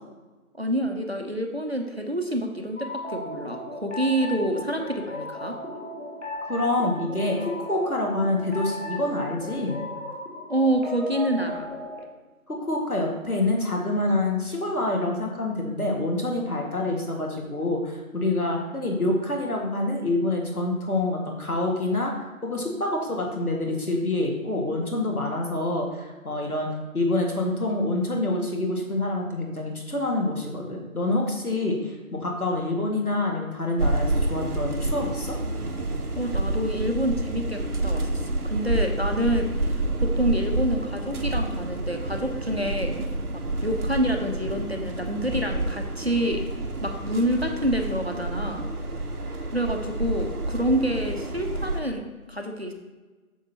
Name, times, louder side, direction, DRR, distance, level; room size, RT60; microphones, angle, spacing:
voice 1, 0.6-5.6 10.5-11.7 36.2-39.7 40.0-42.9 43.6-46.4 46.8-48.7 49.5-52.7, right 1 dB, 45° right, 3 dB, 0.8 m, -27 dB
sound 1, 2.8-12.0, left 2 dB, 50° left, 1.5 m, -36 dB
voice 2, 6.5-9.8 12.5-22.1 22.4-26.7 26.9-35.4, left 2 dB, 75° left, 0 dB, 2.0 m, -26 dB
sound 2, 33.8-51.8, right 2 dB, 80° right, 1.0 m, -28 dB
8.2 x 6.5 x 2.9 m, 1.3 s
figure-of-eight pair, 175°, 44 cm